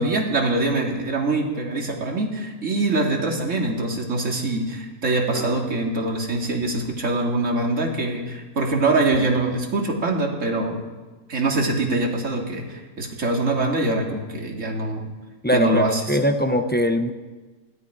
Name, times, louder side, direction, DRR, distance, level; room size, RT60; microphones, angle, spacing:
voice 1, 0.0-10.8 11.3-15.0 15.5-16.2, right 2 dB, 60° right, 1 dB, 2.7 m, -24 dB
sound 1, 5.3-5.7 6.3-7.0 7.6-8.0 8.9-9.4, left 2 dB, 55° left, 2.7 m, -37 dB
voice 2, 15.4-17.1, equal, 10° left, 6 dB, 0.7 m, -21 dB
20.0 x 14.5 x 4.8 m, 1.3 s
omnidirectional pair, 1.5 m